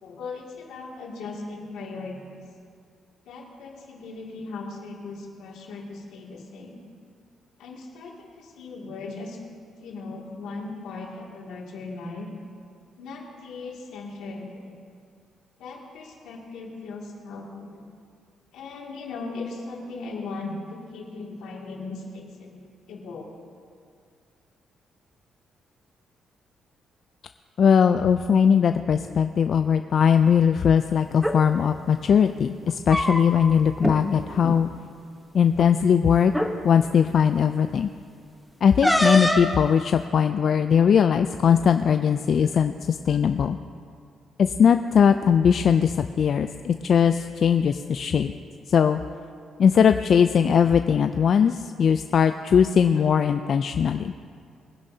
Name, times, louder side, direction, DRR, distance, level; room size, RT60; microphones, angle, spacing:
voice 1, 0.0-2.4 3.2-6.8 7.6-9.4 9.8-12.3 13.0-14.8 15.6-17.9 18.5-23.3, left 3 dB, 85° left, -2 dB, 2.3 m, -38 dB
voice 2, 27.6-34.7 35.3-36.3 36.6-37.9 38.6-43.6 44.4-48.3 48.7-49.0 49.6-54.1, left 7 dB, 55° left, 8 dB, 0.4 m, -20 dB
sound 1, 31.1-31.4 32.6-33.5 33.8-34.0 34.4-34.6 35.6-35.7 36.3-36.5 38.8-39.5, left 1 dB, ahead, 1.0 m, -23 dB
21.5 x 10.5 x 2.8 m, 2.2 s
cardioid pair, 90°, 0 cm